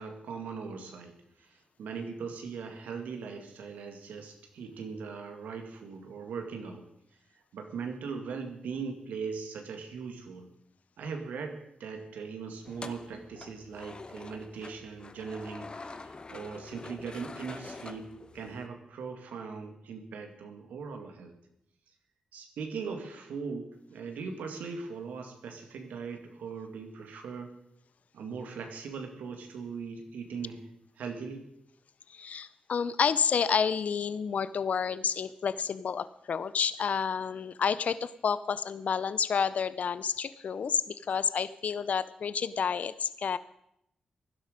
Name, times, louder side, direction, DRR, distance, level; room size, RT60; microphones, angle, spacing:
voice 1, 0.0-6.8 7.5-10.5 11.0-21.3 22.3-27.5 28.1-30.6 31.0-31.5, right 5 dB, 90° right, 4 dB, 2.1 m, -40 dB
sound 1, 12.6-18.7, left 3 dB, 35° left, 1.0 m, -46 dB
voice 2, 32.1-43.4, left 6 dB, 65° left, 16 dB, 0.6 m, -30 dB
16.0 x 11.5 x 5.1 m, 0.78 s
cardioid pair, 55°, 3 cm